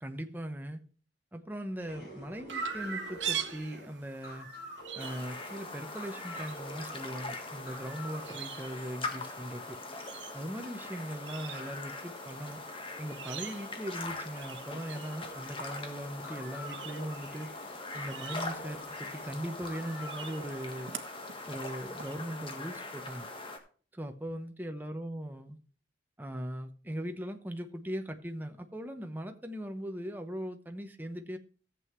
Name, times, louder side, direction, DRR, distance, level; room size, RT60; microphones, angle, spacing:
voice 1, 0.0-0.8 1.3-4.5 4.9-9.8 10.3-12.6 13.0-17.5 17.9-20.9 21.5-23.3 23.9-25.6 26.2-31.4, equal, 10° right, 6 dB, 0.9 m, -39 dB
sound 1, 1.8-8.3 8.6-20.6, equal, 55° left, 5.7 m, -50 dB
Chirp tweet, 2.5-22.1, right 7 dB, 75° right, 1.2 m, -45 dB
sound 2, 5.0-23.6, left 3 dB, 30° left, 1.5 m, -42 dB
14.5 x 7.7 x 3.1 m, 0.41 s
head